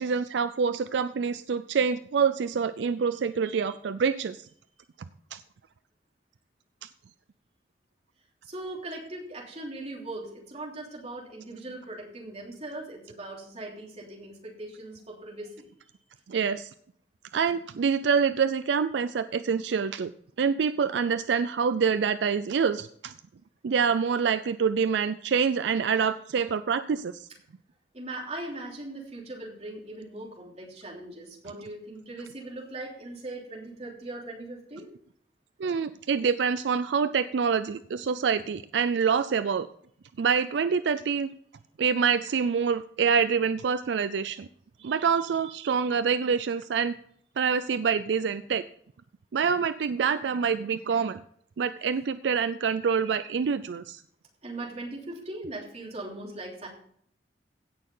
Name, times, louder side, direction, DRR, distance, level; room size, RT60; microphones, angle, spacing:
voice 1, 0.0-4.5 5.3-5.4 6.8-6.9 16.3-16.7 17.3-20.1 20.4-23.1 23.6-27.3 35.6-39.7 40.2-41.3 41.8-44.5 44.8-46.9 47.4-48.6 49.3-51.2 51.6-54.0, right 6 dB, 75° right, 13 dB, 0.4 m, -26 dB
voice 2, 8.4-15.7 27.9-34.9 54.4-56.7, right 2 dB, 35° right, -2 dB, 3.2 m, -39 dB
16.5 x 6.4 x 3.9 m, 0.63 s
head